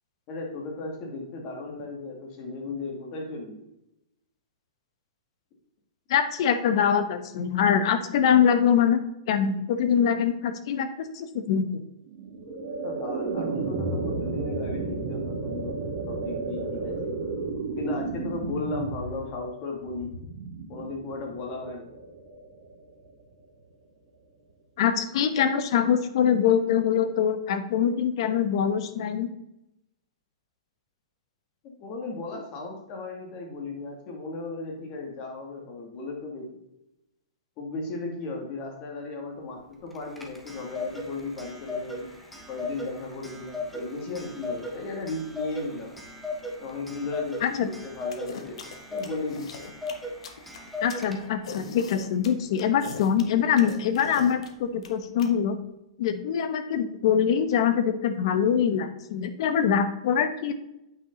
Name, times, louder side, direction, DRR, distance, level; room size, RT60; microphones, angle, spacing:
voice 1, 0.3-3.6 12.8-15.8 16.1-17.3 17.8-20.2 20.7-21.9 31.6-36.5 37.6-42.1 42.5-46.0 46.6-49.5, left 3 dB, 35° left, 1 dB, 2.4 m, -36 dB
voice 2, 6.1-9.0 9.3-11.8 24.8-29.3 47.4-47.7 50.8-55.6 56.0-60.5, left 8 dB, 55° left, 11 dB, 1.0 m, -24 dB
sound 1, 12.1-23.2, right 3 dB, 55° right, 2.2 m, -33 dB
Clock, 39.9-51.5, left 2 dB, ahead, 1.1 m, -37 dB
sound 2, 48.1-55.3, left 5 dB, 75° left, 1.3 m, -40 dB
8.8 x 5.6 x 3.9 m, 0.88 s
hypercardioid pair, 145°, 3 cm